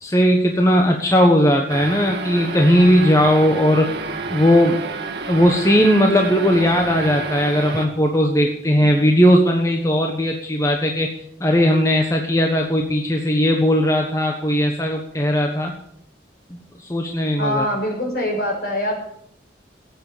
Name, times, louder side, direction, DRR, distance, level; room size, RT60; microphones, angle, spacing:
voice 1, 0.0-3.9 4.3-4.8 5.3-11.1 11.4-15.7 16.5-17.6, equal, 15° left, 2 dB, 1.3 m, -17 dB
sound 1, 1.7-7.9, right 4 dB, 65° right, 2.0 m, -29 dB
voice 2, 17.4-19.0, left 1 dB, 55° left, 0 dB, 6.2 m, -24 dB
15.5 x 9.0 x 7.4 m, 0.68 s
head